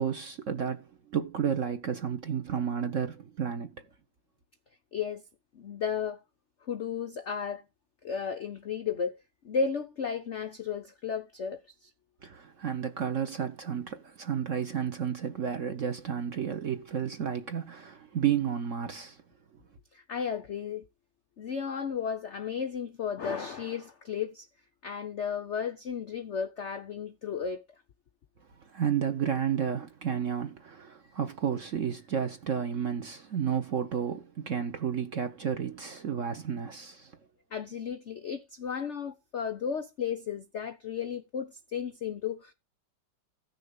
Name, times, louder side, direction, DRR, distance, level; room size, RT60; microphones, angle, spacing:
voice 1, 0.0-3.7 12.2-19.2 28.7-37.1, right 8 dB, 50° right, 0.9 m, -32 dB
voice 2, 4.9-5.2 5.5-6.2 6.6-7.6 8.0-9.1 9.4-11.9 19.9-20.8 21.4-24.5 24.8-27.6 37.5-42.5, left 6 dB, 75° left, 0.6 m, -34 dB
15.0 x 6.5 x 3.9 m
omnidirectional pair, 2.2 m